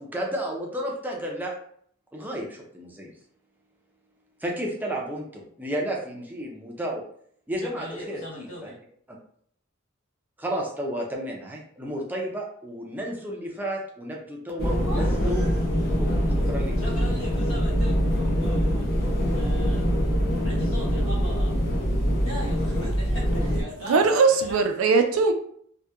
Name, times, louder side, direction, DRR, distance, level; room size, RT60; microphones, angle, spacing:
voice 1, 0.0-1.5 2.1-3.1 4.4-7.0 7.5-8.7 10.4-15.4 16.0-16.7, equal, 10° right, -1 dB, 0.4 m, -32 dB
voice 2, 7.6-8.8 14.8-15.7 16.0-16.4 16.8-18.9 19.3-19.8 20.4-21.5 22.2-24.0 24.4-24.6 24.9-25.0, left 1 dB, 80° left, -6 dB, 1.1 m, -39 dB
sound 1, 14.6-23.6, equal, 50° left, 0.6 m, -24 dB
voice 3, 23.8-25.3, right 4 dB, 85° right, 6 dB, 0.4 m, -20 dB
2.7 x 2.1 x 2.2 m, 0.63 s
head